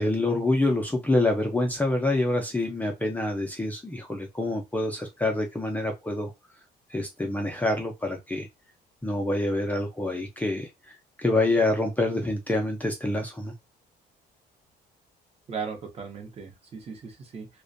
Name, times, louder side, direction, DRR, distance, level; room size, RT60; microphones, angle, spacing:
voice 1, 0.0-6.3 6.9-8.5 9.0-13.5, left 2 dB, 10° left, 0.4 m, -26 dB
voice 2, 15.5-17.5, right 5 dB, 35° right, 0.8 m, -37 dB
2.5 x 2.2 x 2.5 m
cardioid pair, 110°, 17 cm